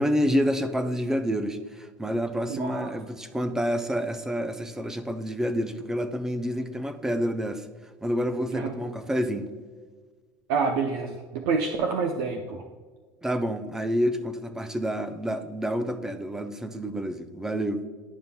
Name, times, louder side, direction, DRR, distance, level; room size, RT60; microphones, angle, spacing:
voice 1, 0.0-7.7 8.0-9.5 13.2-17.8, equal, 5° right, 9 dB, 0.4 m, -28 dB
voice 2, 2.5-2.9 8.5-8.7 10.5-12.6, right 5 dB, 75° right, 4 dB, 0.6 m, -27 dB
11.0 x 5.3 x 2.2 m, 1.5 s
cardioid pair, 140°, 7 cm